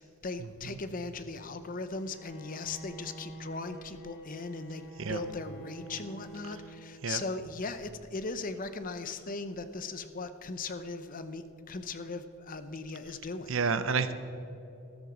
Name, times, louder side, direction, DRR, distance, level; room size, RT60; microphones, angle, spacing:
voice 1, 0.0-13.5, left 3 dB, 40° left, 11 dB, 0.7 m, -38 dB
Bowed string instrument, 1.9-7.3, right 2 dB, 55° left, 1.9 m, -47 dB
voice 2, 13.5-14.1, right 5 dB, 60° right, 12 dB, 0.7 m, -29 dB
13.5 x 12.5 x 5.0 m, 2.8 s
head